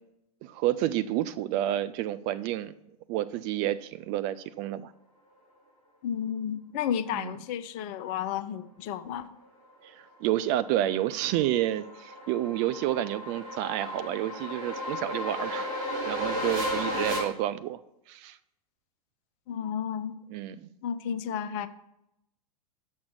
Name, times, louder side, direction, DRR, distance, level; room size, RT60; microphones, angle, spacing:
voice 1, 0.4-2.7 3.1-4.9 7.1-7.3 9.8-15.7 16.0-17.8 18.1-18.4 20.3-20.7, right 13 dB, 35° right, 13 dB, 0.4 m, -30 dB
voice 2, 6.0-9.3 19.5-20.2 20.8-21.7, left 9 dB, 40° left, 12 dB, 0.6 m, -32 dB
sound 1, 10.6-17.2, equal, 60° right, 3.6 m, -34 dB
7.1 x 6.3 x 7.2 m, 0.84 s
figure-of-eight pair, 95°, 19 cm